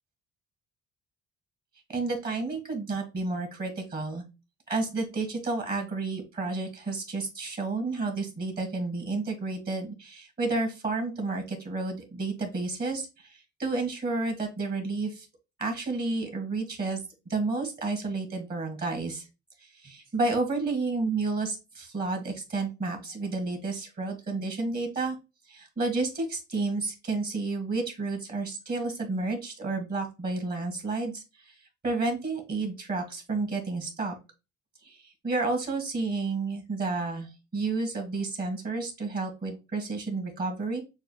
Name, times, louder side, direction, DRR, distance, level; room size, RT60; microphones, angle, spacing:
voice 1, 1.9-4.2 4.7-15.3 15.6-17.0 17.3-19.3 19.6-25.1 25.5-31.6 31.8-34.1 34.8-40.8, right 3 dB, 30° right, 4 dB, 1.7 m, -31 dB
6.4 x 2.3 x 2.3 m, 0.28 s
cardioid pair, 90°, 30 cm